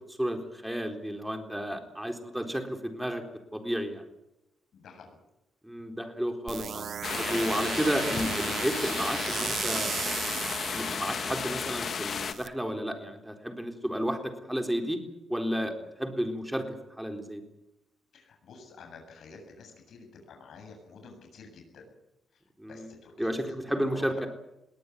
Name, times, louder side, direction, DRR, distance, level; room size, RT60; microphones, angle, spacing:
voice 1, 0.1-3.2 3.5-4.0 5.6-6.9 7.2-10.1 10.7-15.0 15.3-15.7 16.0-17.4 22.6-22.9 23.2-24.3, equal, 5° right, 5 dB, 4.1 m, -32 dB
voice 2, 4.7-5.2 18.1-21.9 22.3-24.3, left 4 dB, 65° left, 3 dB, 7.8 m, -50 dB
sound 1, 6.5-12.5, right 7 dB, 55° right, 1.4 m, -35 dB
sound 2, 7.0-12.3, left 6 dB, 50° left, 2.1 m, -33 dB
21.5 x 18.5 x 9.7 m, 0.90 s
cardioid pair, 110°, 0 cm